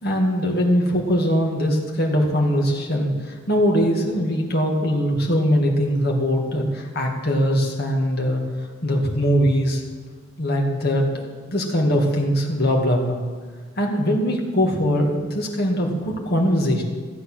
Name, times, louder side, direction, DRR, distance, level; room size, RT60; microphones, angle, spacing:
voice 1, 0.0-8.4 8.8-9.8 10.4-13.2 13.8-16.8, equal, 55° left, 0 dB, 2.1 m, -21 dB
15.0 x 8.4 x 6.3 m, 1.5 s
head